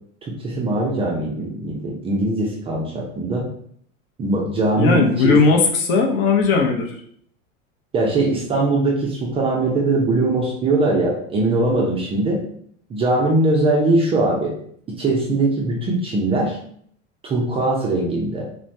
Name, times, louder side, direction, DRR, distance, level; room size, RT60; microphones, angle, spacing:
voice 1, 0.2-3.5 4.2-5.4 7.9-12.4 12.9-14.5 15.0-16.6 17.2-18.5, right 2 dB, 15° right, -2 dB, 0.4 m, -21 dB
voice 2, 4.8-6.9, left 4 dB, 50° left, 2 dB, 0.7 m, -17 dB
3.1 x 2.1 x 2.6 m, 0.64 s
figure-of-eight pair, 85°, 37 cm